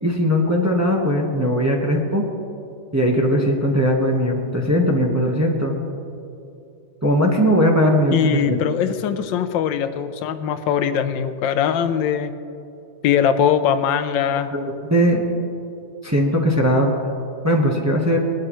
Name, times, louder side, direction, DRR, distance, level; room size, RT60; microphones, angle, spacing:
voice 1, 0.0-2.3 2.9-5.8 7.0-8.6 14.5-14.6 14.9-15.2 16.0-16.9 17.4-18.2, equal, 10° right, 0 dB, 0.9 m, -19 dB
voice 2, 8.1-12.3 13.0-14.5, left 8 dB, 90° left, 11 dB, 1.4 m, -21 dB
20.0 x 12.0 x 3.1 m, 2.6 s
omnidirectional pair, 2.0 m